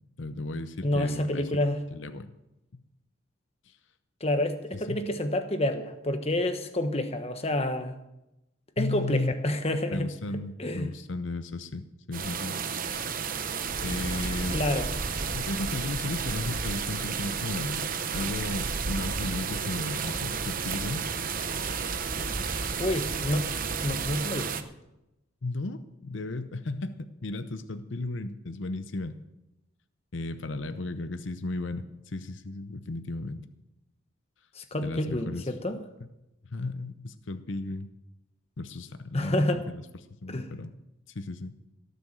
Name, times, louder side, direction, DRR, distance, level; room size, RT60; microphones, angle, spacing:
voice 1, 0.2-1.5 1.9-2.4 2.7-2.8 3.7-3.8 4.7-5.0 8.8-9.3 9.9-12.6 13.8-14.6 15.3-17.9 18.1-21.1 25.4-29.2 30.1-33.4 34.8-35.4 36.4-37.9 38.6-39.8 40.2-40.7 41.1-41.5, left 2 dB, 65° left, 10 dB, 0.7 m, -35 dB
voice 2, 0.8-1.8 4.2-7.9 8.8-10.1 10.6-10.9 14.5-14.9 22.8-23.5 23.8-24.6 34.5-35.8 39.1-39.6 40.3-40.5, left 1 dB, 30° left, 7 dB, 1.2 m, -28 dB
sound 1, 12.1-24.6, right 6 dB, 45° right, 0.8 m, -32 dB
sound 2, 13.7-24.2, equal, 15° right, 1.4 m, -41 dB
17.0 x 6.9 x 7.6 m, 0.92 s
head